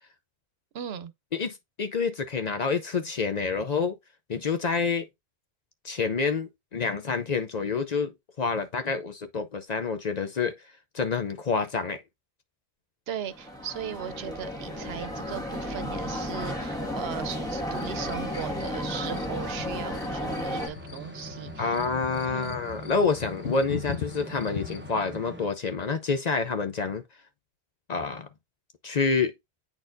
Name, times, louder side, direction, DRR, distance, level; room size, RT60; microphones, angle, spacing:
voice 1, 0.7-1.1 13.1-21.8 22.2-22.6, right 8 dB, 75° right, 0.9 m, -38 dB
voice 2, 1.3-4.0 4.3-5.1 5.8-8.1 8.4-10.5 10.9-12.0 21.6-27.0 27.9-28.3 28.8-29.3, left 5 dB, 50° left, 0.6 m, -28 dB
sound 1, 13.3-20.7, equal, 5° left, 1.6 m, -33 dB
sound 2, 16.8-25.5, right 2 dB, 15° right, 0.6 m, -45 dB
sound 3, 17.5-25.0, left 7 dB, 70° left, 1.0 m, -40 dB
8.9 x 4.2 x 2.6 m
omnidirectional pair, 1.1 m